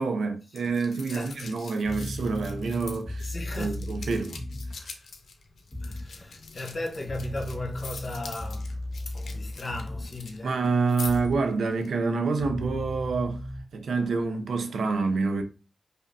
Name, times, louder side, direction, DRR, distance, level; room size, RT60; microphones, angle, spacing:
voice 1, 0.0-4.4 4.7-4.9 10.4-13.5 13.7-15.4, right 4 dB, 90° right, 0.5 m, -27 dB
sound 1, 0.6-10.4 10.6-11.3 11.7-11.9, left 4 dB, 75° left, 0.5 m, -44 dB
voice 2, 1.1-1.7 3.2-3.8 5.8-10.6, left 2 dB, 50° left, 1.0 m, -37 dB
sound 2, 1.8-4.9 5.7-6.1 7.1-10.2 11.0-11.4 12.4-13.6, left 1 dB, 15° left, 1.5 m, -35 dB
5.1 x 2.1 x 2.6 m
wide cardioid pair, 90°, 0 cm